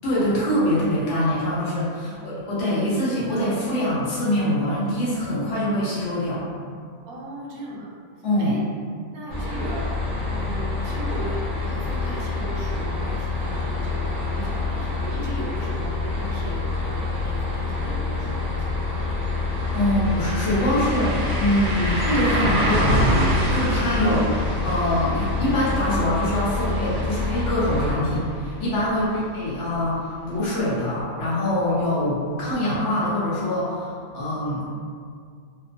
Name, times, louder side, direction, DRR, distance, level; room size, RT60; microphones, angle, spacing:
voice 1, 0.0-6.5 8.2-8.5 19.7-24.3 24.6-34.7, left 1 dB, 65° left, -8 dB, 1.0 m, -24 dB
voice 2, 2.0-2.3 7.0-8.0 8.4-8.6 9.1-9.9 10.3-19.3 28.9-29.2, right 2 dB, 90° right, -4 dB, 1.1 m, -38 dB
sound 1, 9.3-27.9, left 3 dB, 45° left, 1.0 m, -27 dB
sound 2, 19.5-29.3 29.7-29.8 32.5-32.6, equal, 55° right, 0.4 m, -27 dB
2.9 x 2.0 x 2.4 m, 2.1 s
omnidirectional pair, 1.5 m